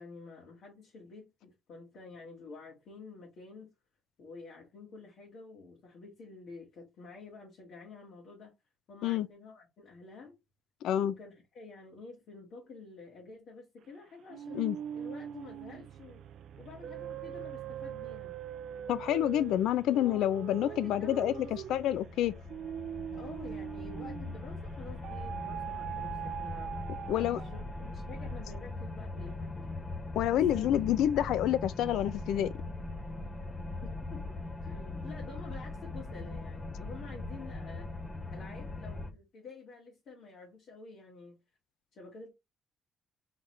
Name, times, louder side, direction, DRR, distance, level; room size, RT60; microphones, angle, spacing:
voice 1, 0.0-3.7 4.2-8.6 8.9-10.4 11.0-16.2 16.6-18.3 20.0-20.2 20.6-21.5 23.1-26.7 27.1-29.6 30.2-30.7 31.1-31.3 33.8-34.4 34.6-37.9 38.3-41.4 41.9-42.3, left 4 dB, 70° left, 1.8 m, -49 dB
voice 2, 10.8-11.1 14.5-14.7 18.9-21.3 21.7-22.3 27.1-27.4 30.1-32.5, left 11 dB, 85° left, 0.4 m, -28 dB
sound 1, 14.3-24.5 25.0-27.8, right 9 dB, 75° right, 0.4 m, -42 dB
sound 2, 21.3-39.1, left 2 dB, 30° left, 0.8 m, -40 dB
3.9 x 3.5 x 3.1 m
cardioid pair, 90°, 0 cm